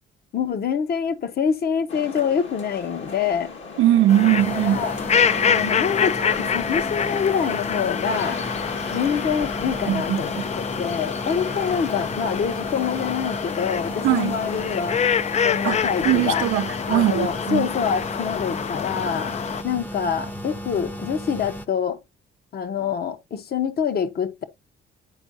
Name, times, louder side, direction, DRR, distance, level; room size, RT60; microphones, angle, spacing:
voice 1, 0.3-3.5 4.3-5.0 5.5-8.4 8.9-15.0 15.4-16.5 16.9-19.4 19.6-22.0 22.5-24.4, left 7 dB, 50° left, 1.0 m, -26 dB
sound 1, 1.9-16.2, left 4 dB, 70° left, 1.7 m, -37 dB
voice 2, 3.8-4.8 9.9-10.2 14.0-14.3 15.6-15.8 16.0-17.7, right 13 dB, 85° right, 0.5 m, -20 dB
sound 2, 4.1-19.6, left 7 dB, 35° left, 0.4 m, -26 dB
sound 3, 4.4-21.7, equal, 10° left, 0.7 m, -35 dB
9.9 x 4.5 x 2.7 m
cardioid pair, 90°, 20 cm